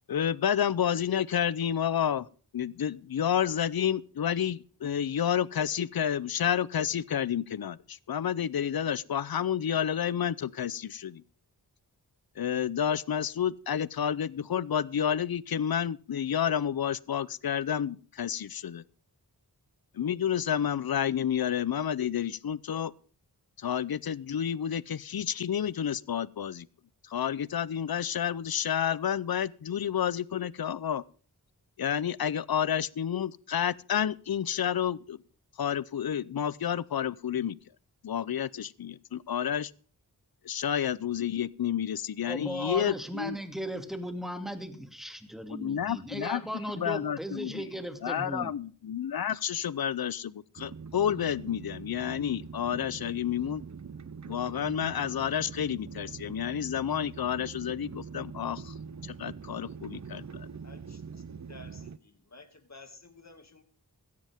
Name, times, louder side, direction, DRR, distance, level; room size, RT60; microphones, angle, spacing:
voice 1, 0.1-2.3 2.5-11.2 12.4-18.8 19.9-22.9 23.6-26.7 27.1-31.0 31.8-35.2 35.6-37.6 38.0-39.7 40.4-43.4 45.5-46.4 46.8-47.6 48.0-53.6 54.3-58.7 59.1-60.5, left 9 dB, 65° left, 0.6 m, -30 dB
voice 2, 42.3-48.5, equal, ahead, 2.4 m, -37 dB
sound 1, 50.6-62.0, right 6 dB, 45° right, 0.6 m, -43 dB
voice 3, 60.6-63.6, left 3 dB, 45° left, 2.2 m, -53 dB
17.0 x 13.0 x 3.6 m
cardioid pair, 40°, 39 cm